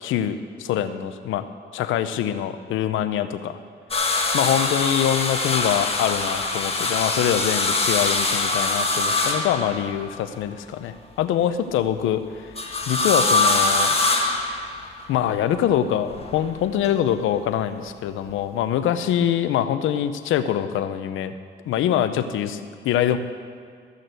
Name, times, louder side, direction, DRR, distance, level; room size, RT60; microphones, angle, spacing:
voice 1, 0.0-1.4 1.7-3.6 4.3-12.5 12.9-13.9 15.1-21.3 21.7-23.2, left 10 dB, 85° left, 11 dB, 0.7 m, -24 dB
sound 1, 3.9-10.2 12.6-15.1 16.1-16.9 18.3-18.4, left 3 dB, 30° left, 1.6 m, -23 dB
14.0 x 6.6 x 7.9 m, 2.1 s
cardioid pair, 90°, 20 cm